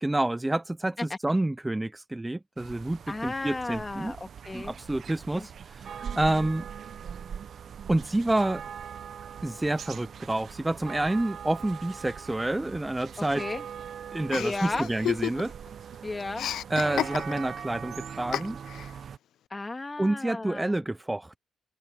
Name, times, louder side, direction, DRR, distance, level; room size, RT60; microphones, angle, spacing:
voice 1, 0.0-4.1 4.5-6.7 7.9-8.6 9.4-13.4 14.1-15.5 16.7-18.6 20.0-21.4, right 1 dB, 10° right, 0.6 m, -28 dB
sound 1, 2.6-19.2, right 7 dB, 60° right, 0.9 m, -41 dB
voice 2, 3.1-4.7 5.3-5.5 13.2-13.6 14.3-14.9 16.0-16.5 19.5-20.8, left 2 dB, 20° left, 2.4 m, -34 dB
Chuckle chortle, 14.3-15.7 15.9-17.6 18.3-18.9, left 11 dB, 80° left, 0.5 m, -32 dB
open air
cardioid pair, 80°, 0 cm